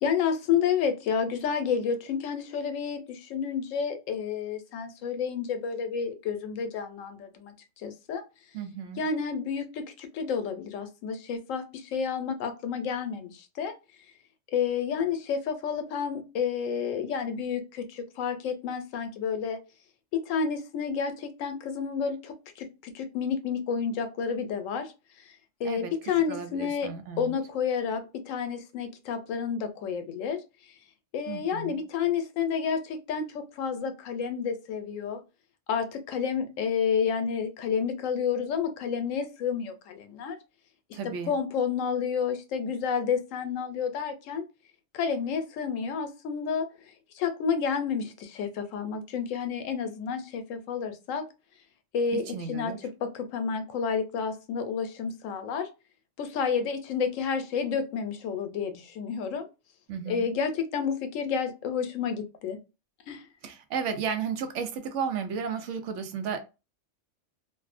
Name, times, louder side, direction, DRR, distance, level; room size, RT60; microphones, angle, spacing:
voice 1, 0.0-8.2 9.0-13.7 14.5-19.6 20.1-24.9 25.6-26.9 27.2-30.4 31.1-35.2 35.7-40.4 40.9-41.0 41.3-44.4 44.9-46.7 47.1-51.2 51.9-52.7 53.0-55.7 56.2-59.5 60.1-62.6 63.1-63.2, left 6 dB, 85° left, 1.0 m, -30 dB
voice 2, 8.5-9.0 25.6-25.9 26.3-27.4 31.3-31.8 40.9-41.4 52.1-52.8 59.9-60.3 63.4-66.4, right 6 dB, 75° right, 0.9 m, -33 dB
2.6 x 2.0 x 2.4 m
omnidirectional pair, 1.3 m